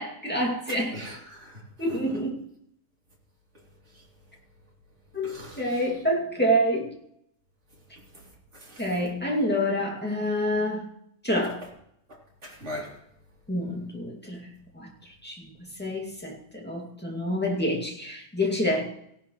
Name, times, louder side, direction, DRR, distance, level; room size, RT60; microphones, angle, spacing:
voice 1, 0.0-1.0 1.8-2.4 5.1-6.9 8.8-10.8 11.2-11.6 13.5-14.5 14.7-14.9 15.2-15.5 15.8-18.9, equal, 5° left, 2.2 m, -27 dB
voice 2, 0.9-1.6 1.9-2.0 5.2-5.8 8.5-8.8 12.4-13.0, left 1 dB, 45° right, 3.7 m, -40 dB
17.0 x 11.5 x 3.2 m
omnidirectional pair, 1.7 m